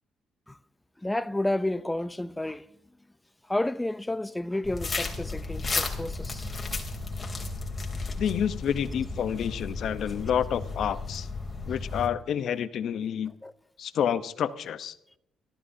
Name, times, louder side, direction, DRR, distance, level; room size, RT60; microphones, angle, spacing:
voice 1, 1.0-2.6 3.5-6.5 13.4-13.5, left 1 dB, 10° left, 0.6 m, -31 dB
sound 1, 4.6-12.1, left 3 dB, 25° left, 3.2 m, -34 dB
voice 2, 8.2-11.3 11.7-13.3 13.8-15.0, left 8 dB, 70° left, 0.9 m, -29 dB
29.5 x 13.5 x 2.8 m
cardioid pair, 90°, 0 cm